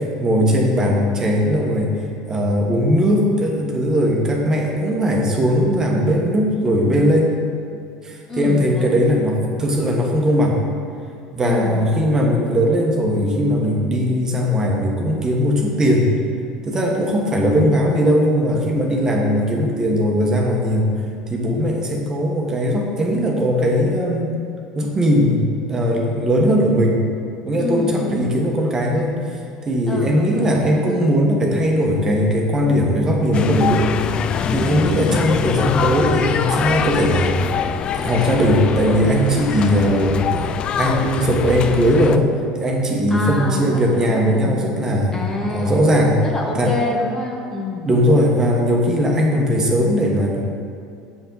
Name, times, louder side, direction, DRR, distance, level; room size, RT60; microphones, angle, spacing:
voice 1, 0.0-1.9 2.3-7.3 8.0-10.6 11.3-16.1 16.6-20.9 21.3-24.4 24.7-27.0 27.5-29.4 29.6-33.9 34.5-37.4 38.0-40.3 40.8-45.2 45.5-46.2 46.5-46.7 47.8-50.4, equal, 25° right, -1 dB, 1.3 m, -19 dB
voice 2, 8.3-9.0 11.4-11.9 27.6-28.3 29.9-31.1 34.4-35.4 39.5-40.0 43.1-44.7 45.1-47.9, left 2 dB, 20° left, -1 dB, 1.1 m, -27 dB
sound 1, 33.3-42.2, left 7 dB, 40° left, 0.3 m, -23 dB
6.9 x 6.8 x 4.0 m, 2.4 s
supercardioid pair, 100°, 2 cm